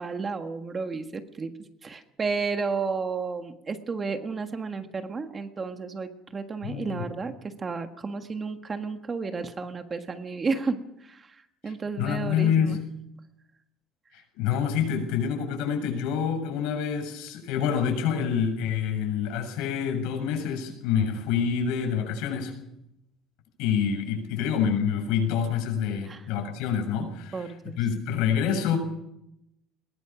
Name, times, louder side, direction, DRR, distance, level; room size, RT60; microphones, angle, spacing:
voice 1, 0.0-1.5 1.8-12.8 26.1-26.3 27.3-27.8, right 4 dB, 25° right, 7 dB, 1.6 m, -32 dB
voice 2, 6.6-7.0 12.0-12.8 14.1-22.5 23.6-28.8, left 7 dB, 85° left, 5 dB, 7.2 m, -27 dB
22.0 x 21.0 x 6.1 m, 0.82 s
cardioid pair, 150°, 0 cm